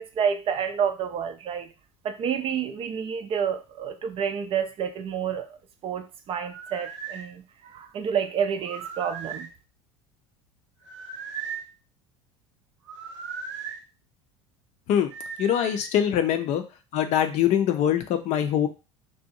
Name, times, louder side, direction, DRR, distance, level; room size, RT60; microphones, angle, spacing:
voice 1, 0.0-1.7 2.0-5.5 5.8-9.5, right 7 dB, 35° right, 8 dB, 0.4 m, -29 dB
sound 1, 6.4-7.3 8.6-9.5 10.8-11.7 12.8-13.8 15.1-16.0, right 6 dB, 75° right, 0.7 m, -37 dB
voice 2, 15.4-16.6 16.9-18.7, left 10 dB, 45° left, 7 dB, 0.5 m, -23 dB
2.7 x 2.2 x 2.6 m, 0.30 s
hypercardioid pair, 75°, 16 cm